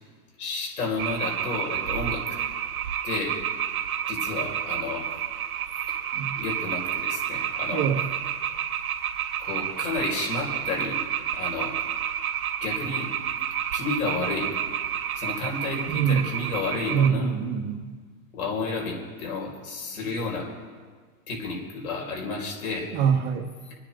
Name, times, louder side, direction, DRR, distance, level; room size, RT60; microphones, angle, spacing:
voice 1, 0.4-2.4 3.0-3.3 4.1-5.1 6.3-7.9 9.4-11.0 11.3-11.7 12.6-13.1 13.7-14.5 15.1-17.3 18.3-20.5 21.3-22.9 23.6-23.8, left 3 dB, 75° left, -1 dB, 6.0 m, -31 dB
sound 1, 1.0-17.1, right 9 dB, 65° right, 2.2 m, -30 dB
voice 2, 7.7-8.0 15.9-16.2 16.9-17.9 22.9-23.4, right 7 dB, 30° right, -4 dB, 1.6 m, -24 dB
29.5 x 10.0 x 3.9 m, 1.5 s
hypercardioid pair, 155°, 44 cm